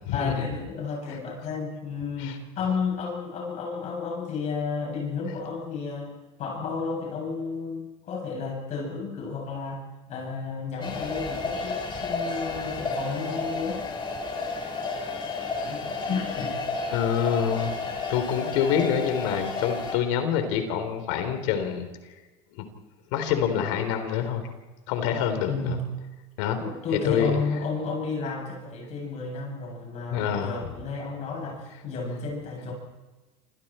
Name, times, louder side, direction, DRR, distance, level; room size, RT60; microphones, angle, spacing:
voice 1, 0.1-6.1 6.4-9.8 10.1-13.8 15.1-15.2 15.6-16.6 25.5-25.8 26.6-32.7, left 4 dB, 50° left, -1 dB, 8.0 m, -32 dB
sound 1, 10.8-20.0, left 3 dB, 30° left, 4.7 m, -32 dB
voice 2, 16.9-17.8 18.1-21.9 22.6-22.7 23.1-24.5 24.9-25.8 26.4-26.6 27.0-27.4 30.1-30.7, left 8 dB, 90° left, 7 dB, 3.8 m, -26 dB
29.0 x 27.0 x 4.5 m, 1.2 s
cardioid pair, 125°, 15 cm